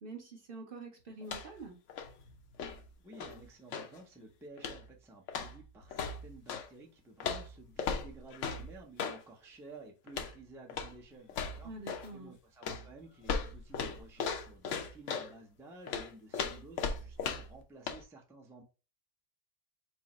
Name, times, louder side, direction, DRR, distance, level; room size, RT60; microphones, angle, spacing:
voice 1, 0.0-1.8 11.6-12.3, right 3 dB, 45° right, 0.9 m, -46 dB
sound 1, 1.2-1.6 1.9-4.0 4.6-4.9 5.3-6.7 7.2-9.2 10.1-10.4 10.7-11.0 11.3-12.1 12.6-15.3 15.9-17.6 17.9-18.0, left 5 dB, 65° left, 0.9 m, -38 dB
voice 2, 3.0-18.6, right 2 dB, 5° right, 0.5 m, -53 dB
4.6 x 2.0 x 4.2 m
omnidirectional pair, 1.4 m